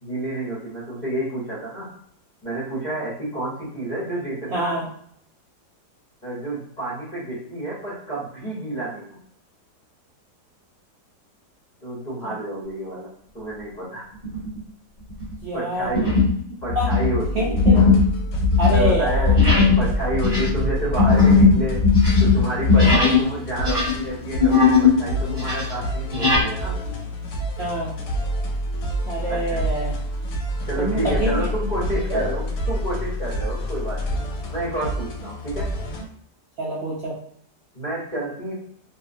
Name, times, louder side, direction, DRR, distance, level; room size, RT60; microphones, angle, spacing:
voice 1, 0.0-1.9 2.4-4.8 6.2-9.2 11.8-13.1 13.3-14.0 15.5-16.1 16.6-17.6 18.7-19.4 19.8-21.8 22.2-26.8 29.3-29.6 30.7-34.2 34.5-35.8 37.7-38.5, right 2 dB, 50° left, -8 dB, 0.5 m, -29 dB
voice 2, 4.5-4.9 12.2-12.3 15.4-15.9 16.7-16.9 17.3-17.8 18.6-19.4 22.8-23.1 27.6-27.9 29.1-30.0 30.8-31.4 32.1-32.3 36.6-37.2, right 1 dB, 85° right, -3 dB, 0.5 m, -26 dB
sound 1, 14.2-14.6 15.1-15.3 15.9-16.4 16.7-23.3 23.6-25.0 25.3-26.5, left 4 dB, 5° right, 0.8 m, -17 dB
sound 2, 17.2-36.0, equal, 70° left, 1.0 m, -28 dB
2.8 x 2.1 x 2.4 m, 0.67 s
omnidirectional pair, 1.8 m